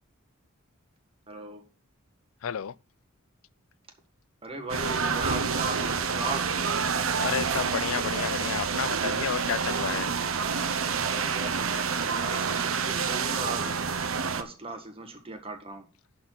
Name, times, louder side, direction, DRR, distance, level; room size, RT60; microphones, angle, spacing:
voice 1, 1.3-1.7 4.4-6.5 11.0-14.0 14.4-15.9, right 2 dB, 25° right, 1.7 m, -38 dB
voice 2, 2.4-2.8 7.2-10.1, left 8 dB, 70° left, 0.4 m, -31 dB
sound 1, 4.7-14.4, right 5 dB, 70° right, 0.9 m, -28 dB
11.0 x 4.3 x 6.0 m
head